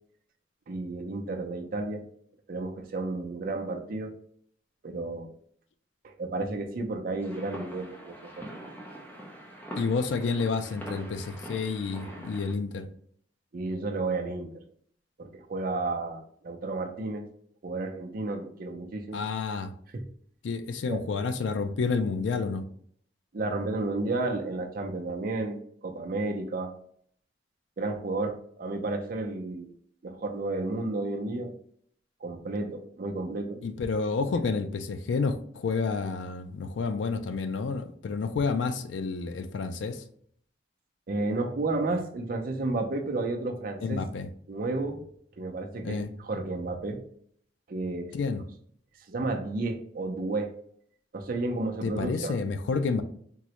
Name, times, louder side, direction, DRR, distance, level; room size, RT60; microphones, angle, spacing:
voice 1, 0.7-2.1 2.5-4.2 4.8-5.3 6.0-8.6 13.5-14.6 15.2-17.3 17.6-19.3 19.9-20.1 20.9-21.0 23.3-26.8 27.8-29.7 30.0-31.5 32.2-33.6 34.4-34.5 41.1-44.0 44.5-45.0 45.4-47.1 47.7-48.2 49.1-50.6 51.1-52.4, right 2 dB, 50° right, 4 dB, 0.5 m, -32 dB
sound 1, 7.2-12.5, equal, 10° left, 0.5 m, -43 dB
voice 2, 9.8-12.9 19.1-19.7 20.4-22.6 33.6-40.0 43.8-44.3 45.8-46.1 48.1-48.4 51.8-53.0, left 4 dB, 80° left, 10 dB, 0.4 m, -30 dB
3.7 x 2.1 x 2.9 m, 0.62 s
head